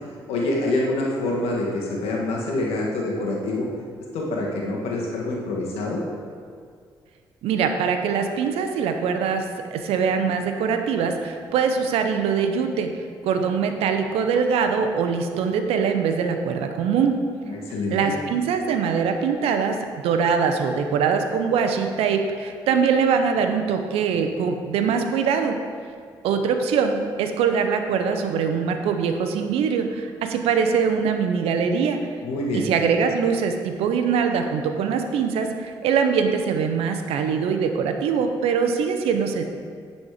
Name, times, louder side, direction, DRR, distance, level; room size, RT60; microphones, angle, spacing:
voice 1, 0.3-3.7 4.1-6.0 17.5-18.1 32.2-32.7, left 2 dB, 80° left, -2 dB, 1.5 m, -26 dB
voice 2, 7.4-9.4 9.7-12.9 13.2-17.2 17.9-19.8 20.0-25.6 26.2-32.0 32.5-39.4, right 6 dB, 80° right, 6 dB, 0.7 m, -23 dB
9.7 x 4.2 x 4.9 m, 2.1 s
supercardioid pair, 60°, 10 cm